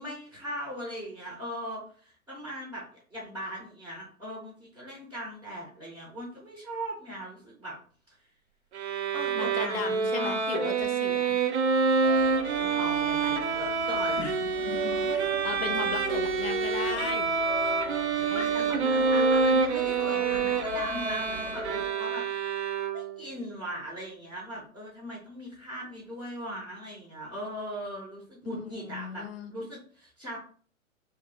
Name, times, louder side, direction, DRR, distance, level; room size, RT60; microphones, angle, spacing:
voice 1, 0.0-7.8 9.1-10.4 12.6-14.4 18.1-22.2 22.9-30.4, equal, 5° right, -4 dB, 0.5 m, -39 dB
Bowed string instrument, 8.7-23.3, right 4 dB, 55° right, 0.5 m, -27 dB
voice 2, 9.3-11.4 14.3-17.3 18.2-18.9 28.5-29.6, left 7 dB, 45° left, 6 dB, 0.5 m, -37 dB
sound 1, 12.0-21.8, right 2 dB, 85° right, 0.9 m, -38 dB
2.6 x 2.5 x 3.6 m, 0.43 s
figure-of-eight pair, 115°, 42 cm